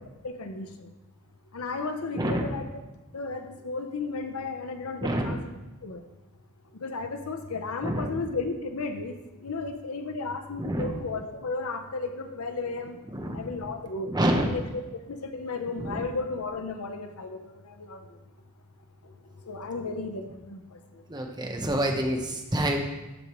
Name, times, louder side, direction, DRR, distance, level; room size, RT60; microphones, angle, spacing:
voice 1, 0.2-0.9 1.5-2.7 3.1-5.5 5.8-6.0 6.7-13.0 13.3-14.6 15.1-18.2 19.0-21.0, left 3 dB, 75° left, 7 dB, 0.8 m, -34 dB
voice 2, 2.1-2.6 5.0-5.4 7.8-8.2 10.6-10.9 13.1-13.4 14.1-14.6 15.8-16.0 21.1-22.8, right 1 dB, 20° right, 2 dB, 1.0 m, -27 dB
12.5 x 5.1 x 3.1 m, 1.0 s
head